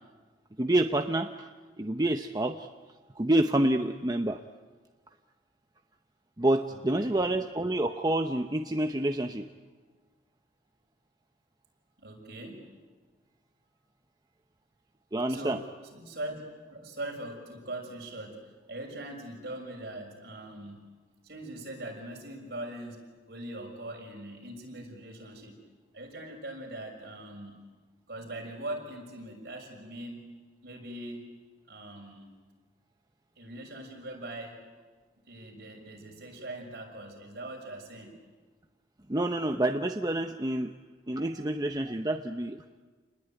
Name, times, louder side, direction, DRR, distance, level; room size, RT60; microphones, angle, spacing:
voice 1, 0.6-1.5 1.8-2.7 3.2-4.4 6.4-9.5 15.1-15.6 39.1-40.7 41.1-42.6, right 1 dB, 20° right, 5 dB, 0.8 m, -28 dB
voice 2, 6.7-7.2 12.0-12.6 15.3-20.8 21.2-25.6 25.9-27.6 28.1-30.3 30.6-31.3 31.7-32.3 33.3-34.7 35.2-38.1 41.1-41.5, right 1 dB, 60° right, 0 dB, 6.5 m, -41 dB
29.0 x 20.5 x 9.2 m, 1.4 s
head